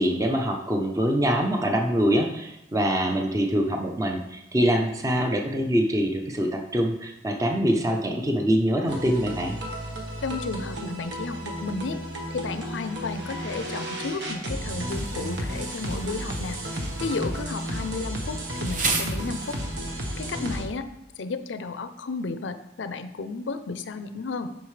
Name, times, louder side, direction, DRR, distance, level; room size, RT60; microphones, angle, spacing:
voice 1, 0.0-9.6, equal, 20° right, 2 dB, 0.6 m, -24 dB
sound 1, 8.9-20.6, equal, 75° right, 1.4 m, -33 dB
voice 2, 10.2-12.0 12.3-19.6 20.2-20.8 21.2-24.5, left 4 dB, 90° left, 10 dB, 0.5 m, -33 dB
Insect, 14.9-19.9, right 3 dB, 45° right, 0.9 m, -35 dB
8.8 x 5.6 x 3.2 m, 0.86 s
head